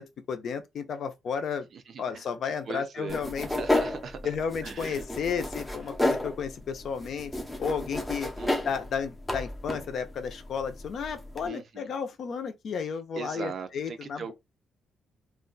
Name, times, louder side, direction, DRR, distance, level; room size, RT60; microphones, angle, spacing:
voice 1, 0.0-1.7 2.0-3.5 4.2-7.3 7.6-8.3 8.6-14.3, left 6 dB, 55° left, 0.5 m, -33 dB
voice 2, 1.7-2.4 2.7-4.4 4.6-5.0 8.4-8.8 11.4-11.9 13.1-14.3, right 6 dB, 45° right, 0.5 m, -40 dB
sound 1, 3.1-11.5, left 1 dB, 5° left, 0.5 m, -32 dB
2.4 x 2.2 x 3.8 m
cardioid pair, 155°, 0 cm